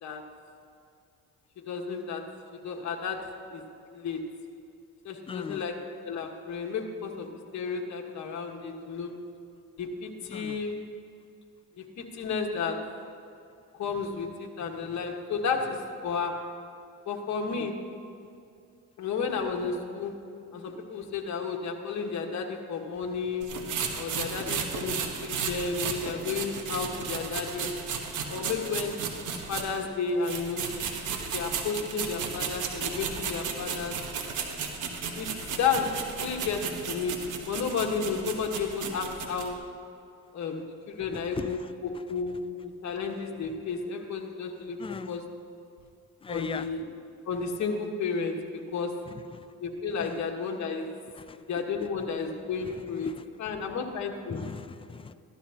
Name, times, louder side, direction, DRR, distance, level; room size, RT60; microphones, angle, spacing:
voice 1, 1.7-2.2 2.5-3.2 3.5-3.6 3.9-4.2 5.0-5.7 6.0-7.3 7.5-9.1 9.8-10.8 11.8-12.8 13.7-16.3 17.1-17.7 19.0-20.1 20.5-23.5 24.0-24.9 25.2-27.7 28.3-28.9 29.5-30.7 31.3-34.0 35.1-35.3 35.6-39.6 40.3-41.6 42.1-44.8 45.1-45.2 46.3-46.9 47.3-48.9 49.6-50.9 51.5-53.1 53.4-54.4, left 5 dB, 65° left, 2 dB, 1.5 m, -32 dB
voice 2, 5.3-5.7 10.3-10.6 17.5-17.7 24.3-24.7 31.7-31.9 41.1-42.0 44.8-45.2 46.2-46.7 49.1-49.5 50.0-50.2 51.2-51.4 51.8-51.9 52.6-53.2 54.3-55.1, left 5 dB, 20° left, 12 dB, 0.4 m, -39 dB
sound 1, 23.4-29.9 30.2-39.5, right 6 dB, 80° right, 1.3 m, -34 dB
15.0 x 12.0 x 2.9 m, 2.5 s
cardioid pair, 90°, 30 cm